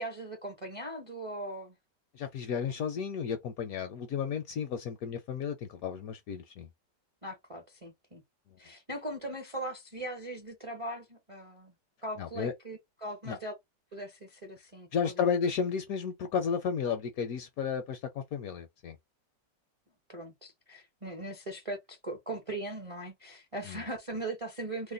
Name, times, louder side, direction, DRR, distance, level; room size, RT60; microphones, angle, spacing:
voice 1, 0.0-1.8 7.2-8.2 8.6-11.7 12.0-13.5 13.9-15.2 20.1-24.9, right 1 dB, 35° right, 0.5 m, -39 dB
voice 2, 2.1-6.7 12.2-12.5 13.3-13.4 14.9-19.0 23.7-23.8, left 6 dB, 70° left, 0.9 m, -33 dB
2.9 x 2.1 x 3.8 m
omnidirectional pair, 1.9 m